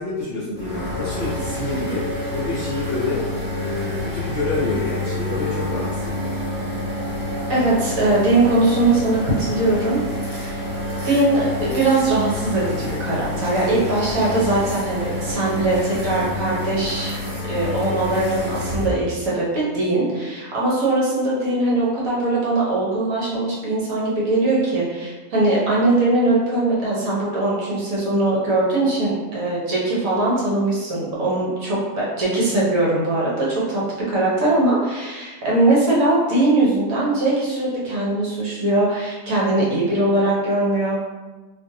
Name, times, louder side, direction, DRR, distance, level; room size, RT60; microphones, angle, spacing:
voice 1, 0.0-3.3 3.5-6.4, left 2 dB, 55° left, -8 dB, 0.7 m, -27 dB
sound 1, 0.5-18.9, left 1 dB, 40° right, 1.1 m, -28 dB
voice 2, 7.5-10.7 11.0-17.1 17.5-33.8 34.1-41.0, right 2 dB, 65° right, -6 dB, 1.1 m, -21 dB
2.6 x 2.4 x 2.6 m, 1.2 s
omnidirectional pair, 1.7 m